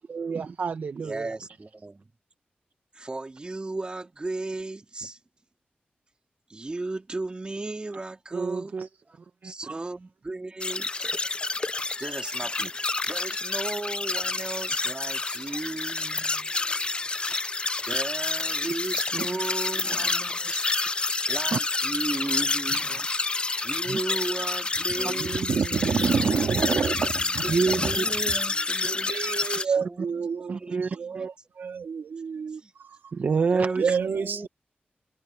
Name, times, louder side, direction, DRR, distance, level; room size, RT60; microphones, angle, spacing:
voice 1, 0.1-1.3 8.3-8.9 9.4-9.7 18.6-18.7 19.1-19.3 20.0-20.1 21.5-21.6 22.9-23.0 23.9-24.0 26.1-26.6 27.5-28.0 30.5-30.9 31.1-31.3 33.1-34.0, right 5 dB, 60° right, 0.8 m, -28 dB
voice 2, 1.0-2.1 2.9-5.2 6.5-8.8 9.1-9.2 9.4-11.1 12.0-16.3 17.5-17.6 17.9-20.9 21.3-22.9 23.6-25.6 27.3-29.1 29.4-31.3 32.5-32.7 33.5-34.5, right 2 dB, 30° right, 3.4 m, -35 dB
sound 1, 10.6-29.7, left 3 dB, 30° left, 0.4 m, -29 dB
voice 3, 25.2-27.9 28.8-30.6 31.0-32.6 33.8-34.5, right 6 dB, 90° right, 2.2 m, -28 dB
wide cardioid pair, 120°, 3 cm